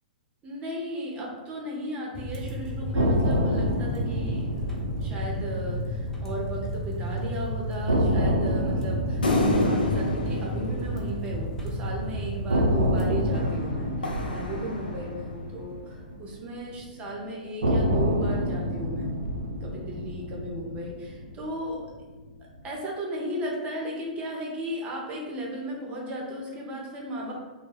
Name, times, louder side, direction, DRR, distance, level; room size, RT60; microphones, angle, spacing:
voice 1, 0.4-4.5 4.8-19.1 19.6-21.9 22.4-27.3, right 1 dB, 25° right, -2 dB, 0.7 m, -35 dB
sound 1, 2.1-13.4, equal, 10° left, 0.5 m, -33 dB
sound 2, 2.9-7.0 7.3-7.4 7.9-12.0 12.5-16.9 17.6-22.0, equal, 90° right, 0.4 m, -28 dB
sound 3, 9.2-11.9 13.3-15.4, left 2 dB, 90° left, 0.4 m, -29 dB
2.2 x 2.1 x 3.3 m, 1.2 s
hypercardioid pair, 115°, 5 cm